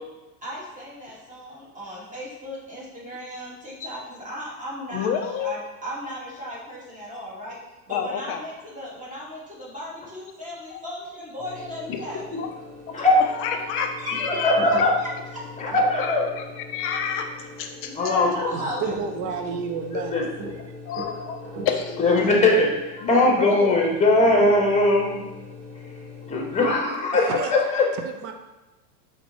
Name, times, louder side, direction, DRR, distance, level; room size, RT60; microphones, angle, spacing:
voice 1, 0.4-5.1 5.4-7.6 7.9-12.4 12.9-13.0 14.3-14.4 17.8-19.0, equal, 15° right, -5 dB, 1.5 m, -36 dB
voice 2, 4.9-5.5 7.9-8.4 10.7-10.8 11.9-12.0 12.4-12.5 13.4-14.8 16.0-18.0 20.8-21.4 21.6-22.0 23.0-23.8, left 7 dB, 30° left, 5 dB, 0.4 m, -29 dB
sound 1, 11.4-26.7, left 1 dB, 90° right, 1.0 m, -40 dB
voice 3, 12.9-13.6 14.2-14.9 15.6-16.3 18.0-18.5 19.9-20.3 22.0-25.3 26.3-27.9, left 2 dB, 15° left, 0 dB, 1.0 m, -20 dB
voice 4, 18.5-20.2 27.3-27.5 28.2-28.3, right 6 dB, 40° right, 6 dB, 0.5 m, -30 dB
4.5 x 3.1 x 2.8 m, 1.1 s
hypercardioid pair, 100°, 48 cm